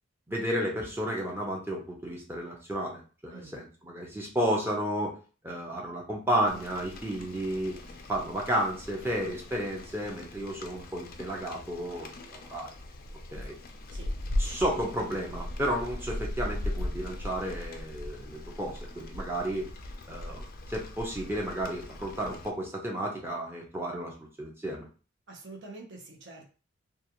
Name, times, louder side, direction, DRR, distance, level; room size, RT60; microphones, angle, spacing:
voice 1, 0.3-5.2 5.4-7.8 8.1-12.7 13.3-13.6 14.4-19.7 20.1-24.9, right 1 dB, 10° right, -1 dB, 0.6 m, -32 dB
Rain, 6.5-22.5, left 1 dB, 45° left, 0.3 m, -39 dB
voice 2, 25.3-26.5, right 2 dB, 55° right, 1 dB, 0.7 m, -46 dB
2.4 x 2.3 x 2.9 m, 0.36 s
head